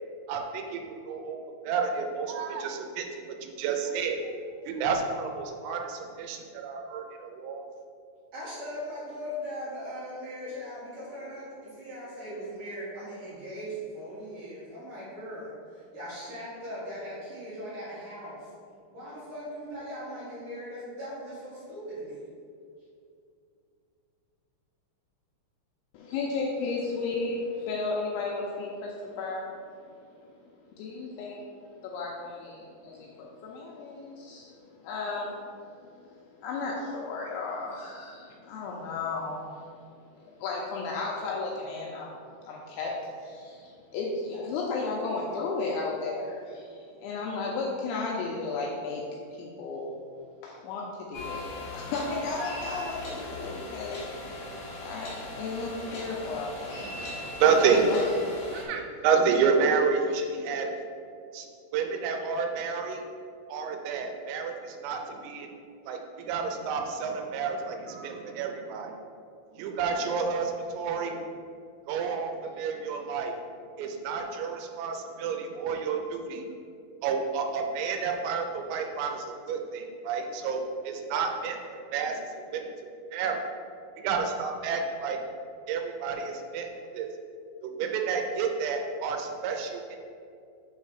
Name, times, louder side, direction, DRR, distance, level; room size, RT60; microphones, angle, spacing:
voice 1, 0.3-4.2 4.7-7.6 56.8-57.8 58.5-60.7 61.3-61.5 61.7-63.0 63.5-65.5 65.8-69.0 69.5-71.2 71.9-73.4 73.8-76.5 77.0-82.7 83.1-83.4 84.0-85.2 85.7-86.7 86.9-87.1 87.6-90.0, right 5 dB, 85° right, 4 dB, 3.4 m, -30 dB
voice 2, 8.3-18.5 18.9-22.2, equal, 55° right, -10 dB, 2.3 m, -39 dB
voice 3, 25.9-29.6 30.2-30.3 30.8-31.4 31.8-34.5 34.8-39.6 40.2-42.1 42.4-49.0 49.3-49.9 50.4-51.4 51.7-54.1 54.8-56.9 57.6-58.0, left 3 dB, 85° left, -3 dB, 2.7 m, -34 dB
sound 1, 51.1-58.6, left 2 dB, 70° left, 1.7 m, -39 dB
7.3 x 3.2 x 6.2 m, 2.4 s
omnidirectional pair, 5.9 m